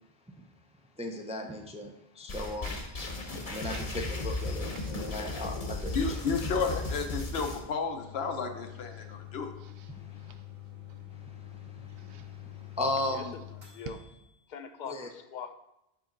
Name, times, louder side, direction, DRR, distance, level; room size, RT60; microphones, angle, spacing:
voice 1, 1.0-2.9 3.2-6.2 9.9-10.3 11.1-13.3 14.9-15.1, left 1 dB, 10° right, 3 dB, 0.4 m, -37 dB
sound 1, 2.3-7.6, left 2 dB, 40° left, 0.9 m, -35 dB
sound 2, 2.6-3.0 3.4-5.5 5.9-7.2 7.4-7.6 8.2-8.3 8.8-9.2 9.6-11.3 11.9-14.0, right 6 dB, 70° right, 0.8 m, -53 dB
voice 2, 5.9-9.5, left 5 dB, 80° left, 5 dB, 1.0 m, -32 dB
sound 3, 7.9-14.4, left 13 dB, 45° right, 2.7 m, -46 dB
voice 3, 13.1-14.1 14.5-15.5, left 6 dB, 60° left, 10 dB, 0.6 m, -43 dB
7.0 x 5.5 x 3.8 m, 0.87 s
omnidirectional pair, 1.0 m